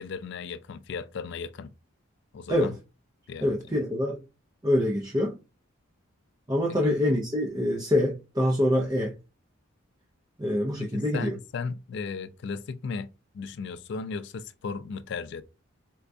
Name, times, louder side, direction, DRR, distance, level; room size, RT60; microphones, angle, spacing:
voice 1, 0.0-1.7 2.3-2.8 3.3-3.6 6.8-7.0 10.8-15.4, left 5 dB, 60° left, 0.3 m, -36 dB
voice 2, 3.4-4.2 4.6-5.4 6.5-9.1 10.4-11.3, left 1 dB, 20° right, 0.4 m, -25 dB
4.4 x 2.2 x 2.5 m
head